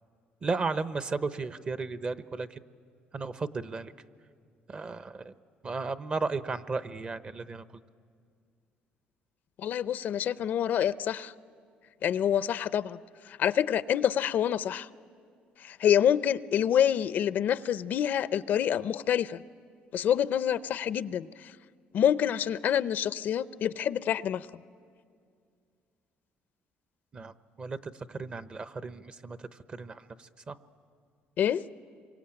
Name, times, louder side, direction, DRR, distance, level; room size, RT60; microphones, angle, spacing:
voice 1, 0.4-2.6 3.1-3.9 4.7-5.3 5.6-7.6 27.1-30.6, right 4 dB, 30° right, 12 dB, 0.9 m, -35 dB
voice 2, 9.6-11.3 12.0-13.0 13.4-14.9 15.6-19.4 19.9-21.3 21.9-24.5 31.4-31.6, left 9 dB, 60° left, 15 dB, 0.6 m, -27 dB
27.0 x 23.5 x 8.8 m, 2.3 s
cardioid pair, 105°, 3 cm